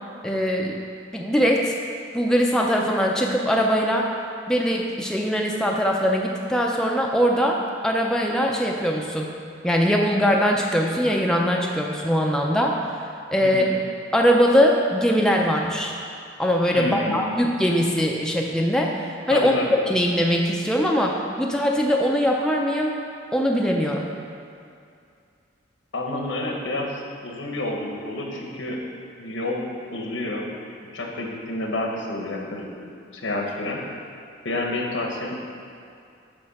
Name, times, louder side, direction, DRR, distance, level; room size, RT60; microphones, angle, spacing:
voice 1, 0.2-0.8 1.1-1.7 2.1-4.1 4.5-9.3 9.6-12.9 13.3-13.7 14.1-15.9 16.4-19.5 19.9-23.0 23.3-24.1, equal, 5° left, -1 dB, 0.4 m, -21 dB
voice 2, 16.7-17.2 19.3-19.8 25.9-28.8 29.2-29.6 29.9-30.5 30.9-32.7 33.1-33.8 34.4-35.3, left 2 dB, 80° left, 0 dB, 1.1 m, -29 dB
8.7 x 3.2 x 6.4 m, 2.4 s
head